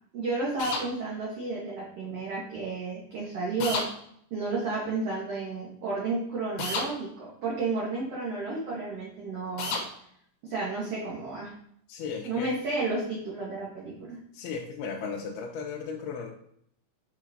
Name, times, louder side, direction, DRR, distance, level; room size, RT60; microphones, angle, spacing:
voice 1, 0.1-3.8 4.3-9.7 10.4-11.5 12.2-14.2, right 3 dB, 90° right, -4 dB, 1.3 m, -32 dB
sound 1, 0.6-0.9 3.6-3.9 6.6-6.9 9.6-9.9, left 3 dB, 70° left, 2.2 m, -30 dB
voice 2, 11.9-12.5 14.3-16.3, left 5 dB, 90° left, -2 dB, 2.6 m, -35 dB
6.4 x 5.8 x 2.6 m, 0.68 s
omnidirectional pair, 4.5 m